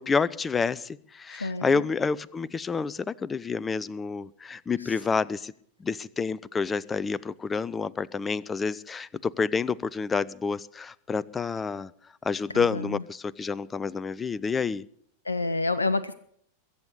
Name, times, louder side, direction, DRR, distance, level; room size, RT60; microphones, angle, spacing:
voice 1, 0.0-5.5 5.8-11.9 12.2-14.8, left 5 dB, 15° left, 21 dB, 0.5 m, -29 dB
voice 2, 1.3-1.8 4.8-5.0 12.5-13.0 15.2-16.1, left 3 dB, 80° left, 14 dB, 0.6 m, -29 dB
22.0 x 8.1 x 6.8 m, 0.64 s
figure-of-eight pair, 90°, 0 cm